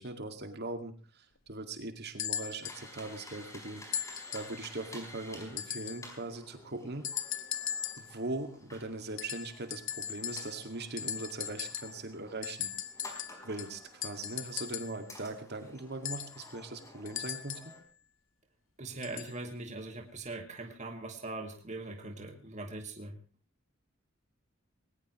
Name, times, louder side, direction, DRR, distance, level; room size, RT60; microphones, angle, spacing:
voice 1, 0.0-3.9 4.3-7.1 8.0-12.7 13.4-17.7, right 2 dB, 55° right, 7 dB, 2.2 m, -40 dB
sound 1, 2.2-2.8 3.9-4.6 5.6-6.1 7.0-8.1 9.2-10.7 11.0-12.0 12.4-15.0 16.0-17.8 19.0-19.4 20.3-20.4, left 9 dB, 80° left, 1.3 m, -38 dB
sound 2, 2.6-17.8, left 1 dB, 15° left, 4.9 m, -52 dB
voice 2, 18.8-23.2, right 2 dB, 35° right, 4 dB, 2.0 m, -41 dB
19.5 x 19.0 x 3.1 m, 0.35 s
head